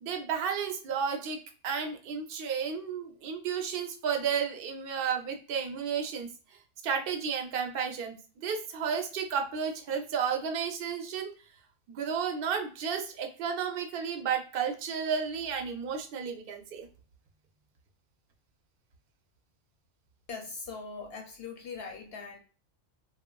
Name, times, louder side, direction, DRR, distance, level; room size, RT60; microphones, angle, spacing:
voice 1, 0.0-6.3 6.8-11.3 11.9-16.9, right 7 dB, 55° right, 0.7 m, -32 dB
voice 2, 20.3-22.4, left 4 dB, 65° left, 0.7 m, -41 dB
3.2 x 2.2 x 2.2 m
omnidirectional pair, 1.3 m